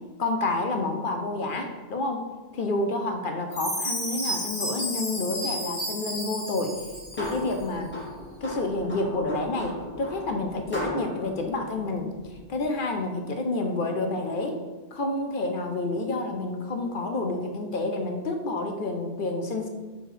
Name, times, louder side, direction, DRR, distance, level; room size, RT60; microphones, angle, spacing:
voice 1, 0.2-2.3 2.5-6.8 7.1-7.9 8.4-12.1 12.5-14.6 14.9-19.7, left 2 dB, 55° left, 4 dB, 0.7 m, -29 dB
Chime, 3.5-7.5, equal, 40° left, 1.6 m, -32 dB
sound 1, 6.7-12.6, left 1 dB, 10° left, 1.9 m, -38 dB
4.4 x 4.4 x 4.9 m, 1.3 s
omnidirectional pair, 1.1 m